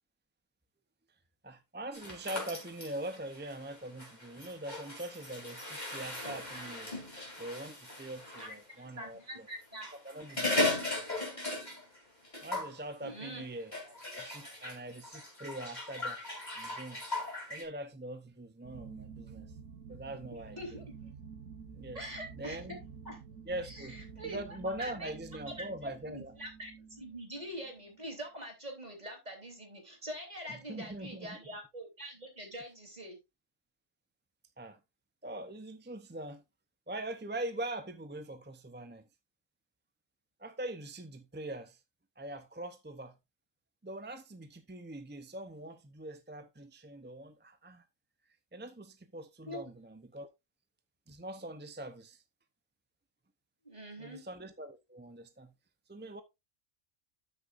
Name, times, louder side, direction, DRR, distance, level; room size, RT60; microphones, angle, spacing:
voice 1, 1.4-6.9 7.4-9.5 10.0-10.6 12.4-16.2 16.5-17.0 17.5-19.5 19.9-20.8 21.7-22.1 22.4-22.8 23.5-26.3 30.5-31.4 34.6-34.8 35.2-36.4 36.9-39.0 40.4-41.8 42.2-43.2 43.8-47.9 48.5-50.3 51.1-52.2 54.0-55.5 55.9-56.2, right 1 dB, 15° right, 0.5 m, -43 dB
sound 1, 1.9-8.5 9.6-12.0 12.2-12.8 13.7-17.6, left 2 dB, 35° left, 3.5 m, -38 dB
voice 2, 8.4-9.9 13.0-13.4 20.5-20.8 21.9-22.6 23.0-23.2 23.6-24.4 24.8-25.1 25.6-33.2 49.5-49.6 53.6-54.2, equal, 30° right, 3.3 m, -44 dB
sound 2, 18.6-28.1, right 6 dB, 85° right, 1.7 m, -50 dB
12.5 x 6.6 x 2.5 m
omnidirectional pair, 1.3 m